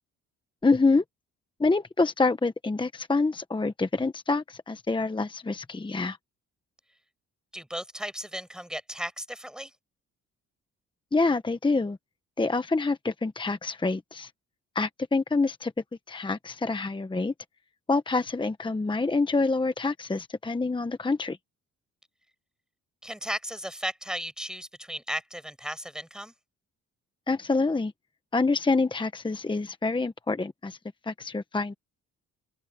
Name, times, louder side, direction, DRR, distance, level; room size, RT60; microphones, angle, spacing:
voice 1, 0.6-1.0 1.6-6.2 11.1-12.0 12.4-14.3 14.7-15.7 16.1-17.3 17.9-21.4 27.3-27.9 28.3-30.8 31.1-31.7, left 3 dB, 15° left, 1.1 m, -26 dB
voice 2, 7.5-9.7 23.0-26.3, equal, ahead, 6.3 m, -35 dB
open air
cardioid pair, 90°, 30 cm